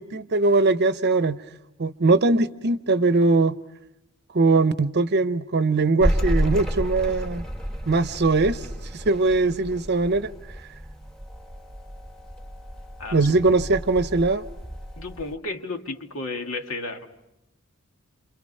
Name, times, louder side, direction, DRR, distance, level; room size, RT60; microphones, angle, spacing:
voice 1, 0.0-1.4 1.8-3.6 4.3-7.4 7.9-8.6 8.9-10.3 13.1-14.4, right 3 dB, 50° right, 0.8 m, -21 dB
sound 1, 6.0-15.3, equal, 5° left, 1.5 m, -31 dB
voice 2, 15.0-17.1, left 3 dB, 70° left, 2.1 m, -33 dB
29.0 x 27.5 x 5.5 m
head